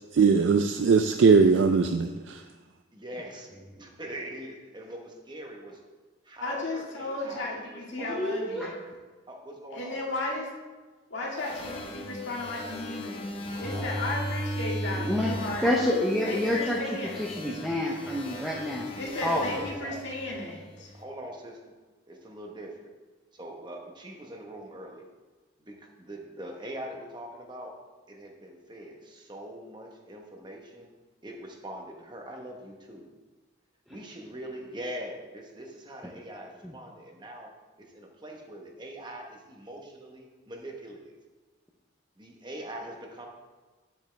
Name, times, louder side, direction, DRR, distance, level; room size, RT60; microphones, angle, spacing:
voice 1, 0.1-2.4, right 5 dB, 65° right, 0.4 m, -20 dB
voice 2, 2.9-3.5 3.8-5.8 6.2-8.3 8.6-8.8 9.3-10.0 11.2-11.6 13.7-14.1 18.3-19.3 19.5-20.0 20.9-21.6 22.1-22.9 23.3-25.1 25.6-27.7 28.1-30.9 31.2-33.1 33.9-37.5 37.8-41.1 42.2-43.3, right 1 dB, 20° right, 1.0 m, -42 dB
voice 3, 6.4-8.8 9.7-10.5 11.1-13.3 13.6-15.7 16.3-17.3 19.0-20.9, left 2 dB, 65° left, 1.8 m, -34 dB
voice 4, 7.9-8.7 14.9-18.9 19.2-19.5 36.6-36.7, left 1 dB, ahead, 0.6 m, -28 dB
sound 1, 11.4-20.8, equal, 25° left, 0.9 m, -37 dB
9.8 x 7.1 x 3.3 m
head